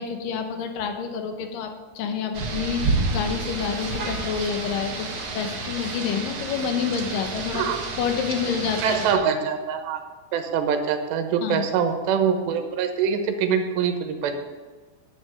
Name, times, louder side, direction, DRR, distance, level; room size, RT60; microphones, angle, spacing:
voice 1, 0.0-5.1 5.3-7.7 8.0-9.1 11.4-11.6, left 6 dB, 70° left, 5 dB, 2.2 m, -28 dB
Rain, 2.3-9.1, right 3 dB, 65° right, 1.3 m, -30 dB
voice 2, 8.8-10.0 10.3-14.3, right 7 dB, 85° right, 6 dB, 3.3 m, -24 dB
11.0 x 8.4 x 6.4 m, 1.4 s
omnidirectional pair, 4.8 m